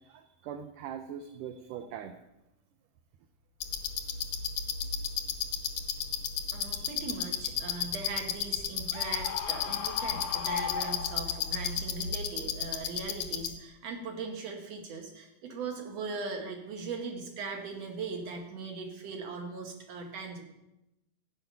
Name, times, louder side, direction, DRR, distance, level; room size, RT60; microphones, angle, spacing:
voice 1, 0.1-2.2, right 8 dB, 75° right, 7 dB, 2.2 m, -41 dB
sound 1, 3.6-13.5, left 7 dB, 60° left, 1.9 m, -33 dB
voice 2, 6.5-20.4, right 4 dB, 50° right, 3 dB, 3.0 m, -39 dB
Screaming, 8.9-11.6, left 9 dB, 80° left, 2.4 m, -37 dB
15.0 x 6.4 x 9.2 m, 0.90 s
omnidirectional pair, 4.1 m